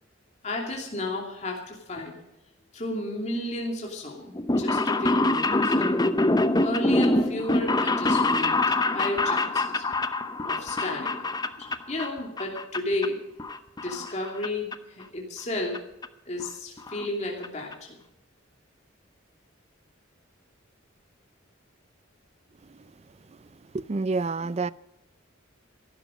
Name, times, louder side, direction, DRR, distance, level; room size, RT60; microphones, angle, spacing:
voice 1, 0.4-2.1 2.7-5.7 6.6-9.8 10.4-13.2 13.8-15.8 16.3-18.0, left 1 dB, 35° left, 2.8 m, -33 dB
sound 1, 4.3-12.1 12.4-13.1 13.4-14.5 14.7-14.8 15.7-15.8 16.0-16.1 16.4-16.5 16.8-17.1 17.4-17.5 17.7-17.8, left 2 dB, 20° left, 0.7 m, -25 dB
voice 2, 23.7-24.7, right 3 dB, 30° right, 0.4 m, -28 dB
15.5 x 12.0 x 5.1 m
head